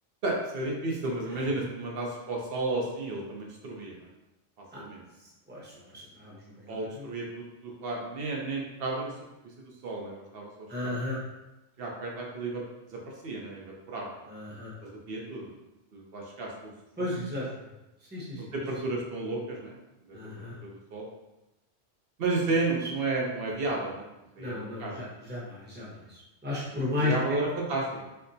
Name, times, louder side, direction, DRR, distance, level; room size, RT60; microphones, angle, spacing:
voice 1, 0.2-4.1 4.8-5.0 6.7-9.1 9.6-10.9 11.8-12.6 12.9-14.1 14.8-15.5 15.9-16.7 18.4-19.8 20.0-21.1 22.2-24.0 24.4-25.0 27.0-28.1, right 2 dB, 60° right, -2 dB, 0.9 m, -33 dB
voice 2, 5.2-7.1 10.7-11.2 14.3-14.7 17.0-17.4 18.1-18.4 20.1-20.6 22.8-22.9 24.4-27.1, left 2 dB, 10° right, -7 dB, 0.8 m, -35 dB
4.2 x 2.1 x 2.6 m, 0.99 s
omnidirectional pair, 1.2 m